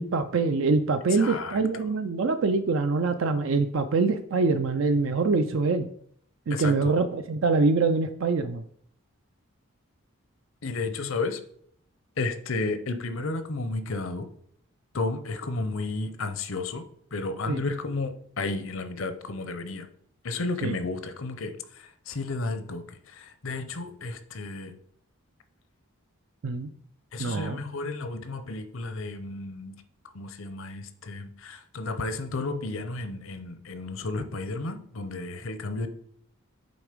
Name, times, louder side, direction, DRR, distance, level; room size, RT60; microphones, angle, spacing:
voice 1, 0.0-5.9 6.5-8.6 17.5-17.6 20.6-20.8 26.4-26.7 27.2-27.6, right 4 dB, 65° right, 8 dB, 0.4 m, -24 dB
voice 2, 1.1-1.6 6.5-6.9 10.6-11.4 12.2-14.3 14.9-16.8 17.1-19.9 20.2-24.7 27.1-29.7 30.1-35.9, left 3 dB, 65° left, 10 dB, 0.7 m, -32 dB
8.1 x 3.5 x 5.1 m, 0.65 s
head